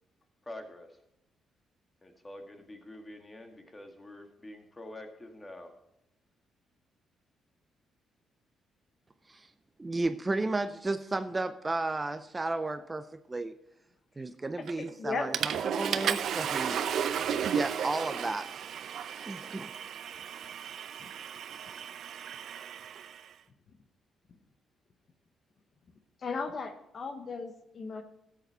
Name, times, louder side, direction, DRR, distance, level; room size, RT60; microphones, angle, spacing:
voice 1, 0.4-1.0 2.0-5.7, left 1 dB, 20° left, 4 dB, 1.9 m, -46 dB
voice 2, 9.8-13.5 14.2-16.8 17.5-18.5 19.2-19.7, right 2 dB, 20° right, 11 dB, 0.5 m, -33 dB
Water / Toilet flush, 14.7-14.9 15.3-23.2, right 8 dB, 70° right, 0.6 m, -34 dB
voice 3, 14.8-15.3 26.2-28.0, left 4 dB, 45° left, 7 dB, 0.9 m, -36 dB
13.0 x 8.2 x 4.5 m, 0.86 s
cardioid pair, 90°, 0 cm